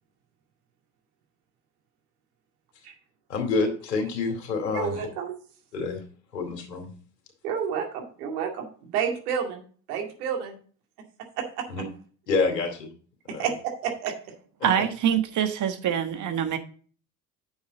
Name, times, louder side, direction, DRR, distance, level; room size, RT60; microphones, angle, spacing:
voice 1, 3.3-5.0 5.7-6.0 6.3-6.9 11.7-11.8 12.3-12.9 13.3-13.5, left 4 dB, 75° left, 2.6 m, -27 dB
voice 2, 4.7-5.3 7.4-9.6 9.9-10.6 11.4-11.6 13.4-13.5 13.8-14.1, right 7 dB, 65° right, 2.4 m, -30 dB
voice 3, 14.6-16.6, right 9 dB, 35° right, 1.5 m, -25 dB
9.7 x 7.1 x 3.9 m
figure-of-eight pair, 60°, 50 cm